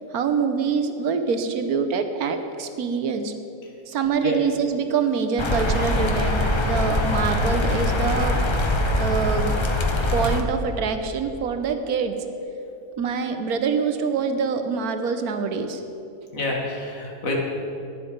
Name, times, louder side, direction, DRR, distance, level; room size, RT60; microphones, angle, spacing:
voice 1, 0.1-3.3 3.9-8.4 9.0-9.5 10.1-12.2 13.0-15.8, right 5 dB, 75° right, 8 dB, 1.3 m, -25 dB
sound 1, 5.4-10.4, left 1 dB, 30° left, 0.5 m, -22 dB
voice 2, 16.3-17.3, left 1 dB, 60° left, -2 dB, 2.2 m, -29 dB
11.5 x 10.0 x 5.2 m, 2.8 s
omnidirectional pair, 1.6 m